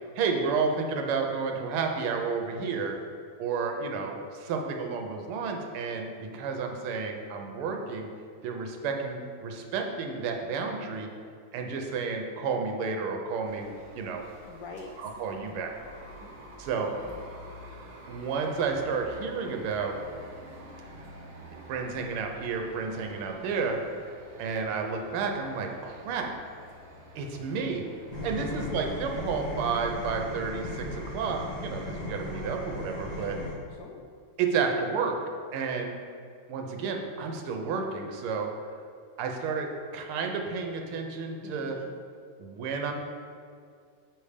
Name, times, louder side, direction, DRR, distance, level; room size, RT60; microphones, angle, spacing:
voice 1, 0.2-2.9 3.4-8.1 8.4-11.1 11.5-13.7 13.9-14.2 15.0-15.8 16.6-16.9 18.1-20.0 21.5-23.8 24.4-26.3 27.1-27.9 28.2-33.4 34.4-35.2 35.5-36.0 36.5-38.5 39.2-41.8 42.4-43.0, right 5 dB, 80° right, 3 dB, 1.6 m, -31 dB
voice 2, 2.5-3.0 14.4-15.0 16.8-17.2 23.3-24.0 28.4-28.5 33.2-34.0 41.4-41.9, left 4 dB, 75° left, 2 dB, 1.0 m, -46 dB
sound 1, 13.5-31.1, right 1 dB, 50° right, 1.1 m, -49 dB
sound 2, 28.1-33.5, left 2 dB, 30° left, 0.9 m, -37 dB
6.8 x 3.3 x 4.9 m, 2.2 s
omnidirectional pair, 2.4 m